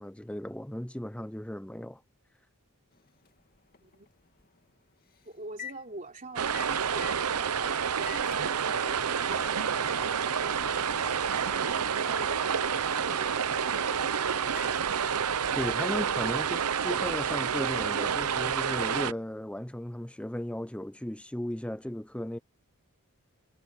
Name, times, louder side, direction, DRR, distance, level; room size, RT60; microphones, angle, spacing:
voice 1, 0.0-2.0 15.5-22.4, left 1 dB, 5° left, 0.6 m, -36 dB
Microwave oven, 2.9-18.6, left 5 dB, 40° left, 2.5 m, -48 dB
voice 2, 5.2-10.0 10.5-12.5, right 2 dB, 35° right, 3.2 m, -46 dB
sound 1, 6.4-19.1, right 7 dB, 80° right, 0.8 m, -29 dB
sound 2, 9.7-14.9, left 4 dB, 65° left, 5.0 m, -60 dB
head